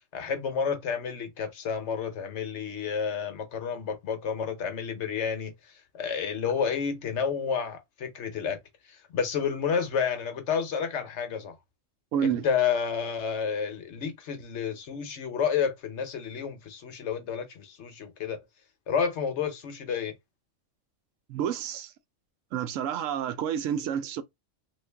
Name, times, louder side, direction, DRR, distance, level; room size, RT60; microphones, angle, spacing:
voice 1, 0.1-5.5 5.9-8.6 8.9-11.5 12.2-18.4 18.9-20.1, left 6 dB, 65° left, 1.1 m, -30 dB
voice 2, 12.1-12.5 21.3-21.9 22.5-24.2, right 9 dB, 80° right, 0.9 m, -29 dB
3.1 x 2.4 x 3.3 m
omnidirectional pair, 1.3 m